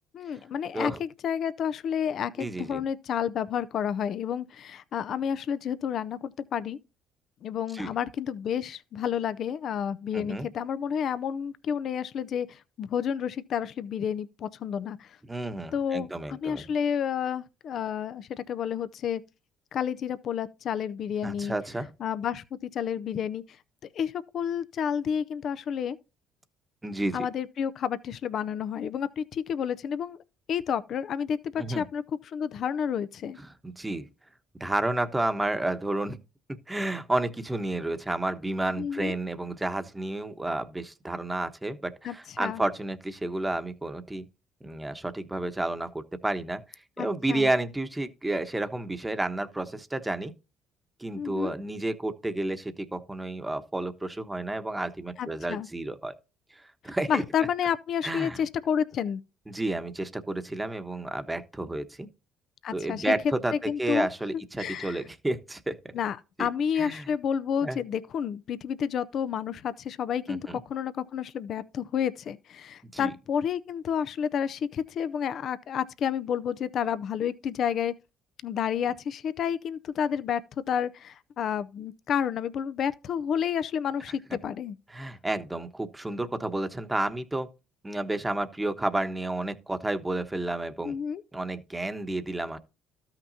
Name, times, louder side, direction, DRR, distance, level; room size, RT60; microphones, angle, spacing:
voice 1, 0.1-6.8 7.4-15.2 15.7-19.2 19.7-21.5 22.0-23.4 23.9-26.0 27.1-30.2 30.5-33.4 38.8-39.2 42.0-42.6 47.0-47.5 51.1-51.6 55.2-55.7 57.1-59.2 62.6-63.1 63.5-64.1 64.6-65.0 65.9-77.9 78.4-84.8 90.8-91.2, left 8 dB, 60° left, 0.5 m, -30 dB
voice 2, 2.4-2.8 7.7-7.9 10.1-10.5 15.3-16.6 21.2-21.9 26.8-27.3 31.6-31.8 33.4-34.1 34.6-36.2 36.7-44.2 44.6-50.3 51.0-56.1 56.5-57.2 58.0-58.4 59.5-62.1 62.7-65.9 66.4-66.5 66.8-67.1 67.6-67.8 70.3-70.6 72.9-73.1 84.9-87.5 87.8-91.0 91.3-92.6, right 2 dB, 15° right, 1.1 m, -31 dB
13.0 x 5.9 x 2.7 m
supercardioid pair, 70°, 0 cm